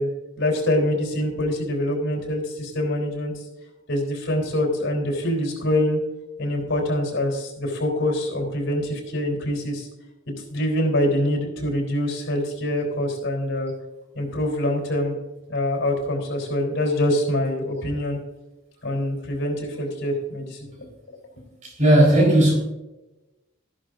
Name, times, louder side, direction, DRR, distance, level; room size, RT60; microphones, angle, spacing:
voice 1, 0.0-3.3 3.9-6.0 6.4-9.9 10.3-13.7 14.1-15.2 15.5-18.2 18.8-20.9, left 1 dB, 65° left, 1 dB, 3.7 m, -25 dB
voice 2, 21.6-22.5, right 1 dB, 40° right, -1 dB, 4.2 m, -16 dB
14.0 x 11.5 x 2.6 m, 1.0 s
head